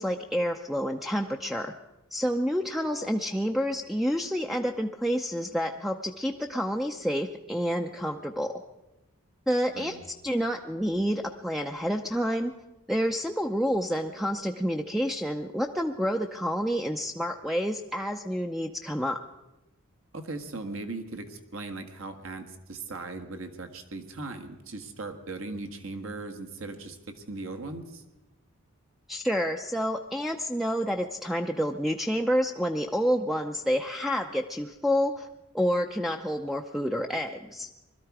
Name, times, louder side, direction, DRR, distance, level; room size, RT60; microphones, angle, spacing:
voice 1, 0.0-1.7 2.1-8.5 9.5-10.0 10.2-12.5 12.9-19.2 29.1-35.3 35.5-37.7, equal, ahead, 4 dB, 0.5 m, -28 dB
voice 2, 20.1-28.0, right 3 dB, 70° right, 7 dB, 1.4 m, -38 dB
21.0 x 13.0 x 4.8 m, 0.99 s
head